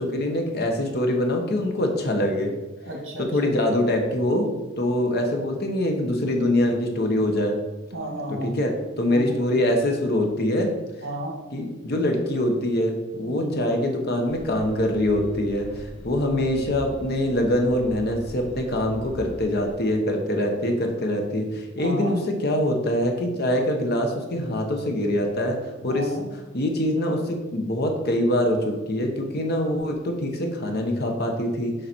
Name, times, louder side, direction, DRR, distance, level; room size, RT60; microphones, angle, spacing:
voice 1, 0.0-2.5 3.3-4.5 4.8-7.6 8.4-10.7 11.5-26.1 26.5-31.7, left 1 dB, 50° left, 3 dB, 1.1 m, -24 dB
voice 2, 2.8-3.5 7.9-8.5 9.0-9.4 11.0-11.3 13.3-13.6 21.8-22.2 25.9-26.3, equal, 70° right, 0 dB, 2.2 m, -32 dB
sound 1, 14.2-19.7, equal, 70° left, 2.4 m, -41 dB
6.7 x 5.0 x 4.5 m, 1.1 s
head